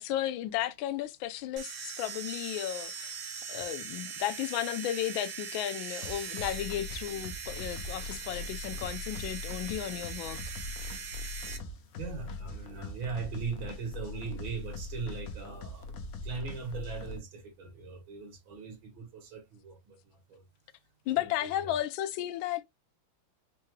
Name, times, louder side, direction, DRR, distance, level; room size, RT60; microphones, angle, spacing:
voice 1, 0.0-3.2 3.5-10.4 21.1-22.6, left 12 dB, 80° left, 1.4 m, -34 dB
sound 1, 1.6-11.6, right 6 dB, 65° right, 0.6 m, -41 dB
sound 2, 6.0-17.2, left 3 dB, 65° left, 0.9 m, -41 dB
voice 2, 11.9-20.4 21.1-21.8, right 5 dB, 85° right, 2.2 m, -40 dB
4.6 x 2.2 x 3.1 m
omnidirectional pair, 2.2 m